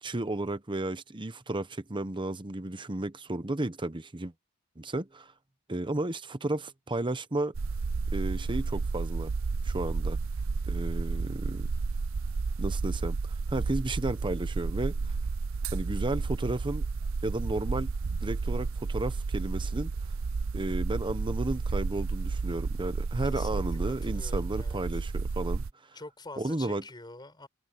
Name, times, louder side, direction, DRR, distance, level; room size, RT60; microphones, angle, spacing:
voice 1, 0.0-4.3 4.8-5.3 5.7-7.5 8.1-9.3 9.6-10.2 10.7-11.7 12.6-15.0 15.7-16.8 17.2-17.9 18.2-19.9 20.5-25.6 26.4-26.8, right 2 dB, 25° right, 1.0 m, -33 dB
sound 1, 7.5-25.7, right 4 dB, 70° right, 0.6 m, -31 dB
voice 2, 23.2-25.0 25.9-27.5, left 2 dB, 20° left, 5.8 m, -46 dB
head